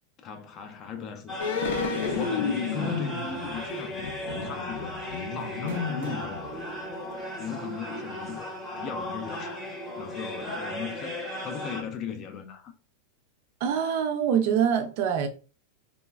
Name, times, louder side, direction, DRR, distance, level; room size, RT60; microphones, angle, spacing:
voice 1, 0.2-1.4 2.0-6.7 7.4-9.7 10.0-12.7, left 6 dB, 30° left, 0.3 m, -38 dB
sound 1, 1.3-11.8, left 1 dB, 10° left, 0.7 m, -36 dB
sound 2, 1.4-6.8 7.1-7.2, left 5 dB, 85° left, 0.5 m, -32 dB
sound 3, 3.7-3.9 4.3-4.4 5.4-6.3 7.1-7.2 8.8-8.9, right 3 dB, 90° right, 0.7 m, -42 dB
voice 2, 13.6-15.3, right 8 dB, 50° right, 0.4 m, -24 dB
3.0 x 2.1 x 2.3 m
supercardioid pair, 160°, 0 cm